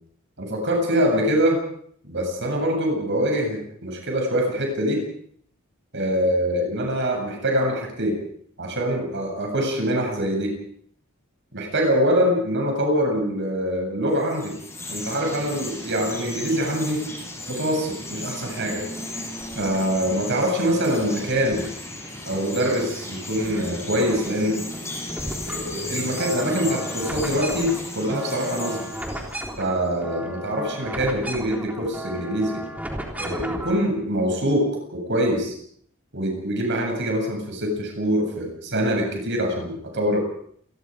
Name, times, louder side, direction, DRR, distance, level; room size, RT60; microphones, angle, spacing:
voice 1, 0.4-1.6 2.1-5.0 5.9-8.2 8.6-10.5 11.5-14.5 14.9-17.0 17.5-18.8 19.6-21.7 22.3-24.6 25.5-28.8 29.6-32.6 33.2-34.7 34.9-35.5 36.1-40.2, equal, 60° right, 2 dB, 7.8 m, -24 dB
Chirp tweet, 14.1-29.7, left 2 dB, 15° left, 7.8 m, -35 dB
sound 1, 18.5-20.0 20.4-22.0 22.3-23.6 23.9-33.8, right 1 dB, 10° right, 3.6 m, -36 dB
28.5 x 21.5 x 5.2 m, 0.63 s
head